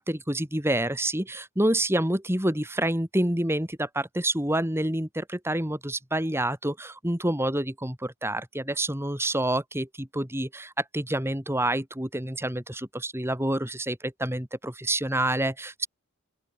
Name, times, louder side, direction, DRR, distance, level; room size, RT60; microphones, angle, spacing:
voice 1, 0.0-15.9, right 1 dB, 10° right, 3.1 m, -28 dB
open air
head